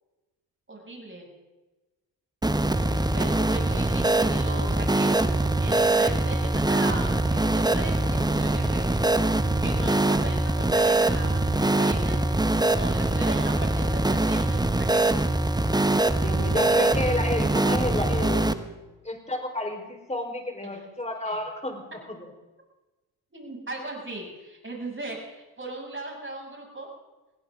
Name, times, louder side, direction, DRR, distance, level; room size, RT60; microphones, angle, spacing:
voice 1, 0.7-1.3 2.7-15.2 20.7-20.9 21.2-21.4 23.3-26.9, right 2 dB, 25° right, -1 dB, 7.6 m, -38 dB
sound 1, 2.4-18.5, right 2 dB, 10° right, 1.1 m, -23 dB
voice 2, 16.2-18.7 19.0-22.2, left 1 dB, 15° left, 3 dB, 4.7 m, -31 dB
21.5 x 16.5 x 3.9 m, 1.1 s
hypercardioid pair, 50°, 47 cm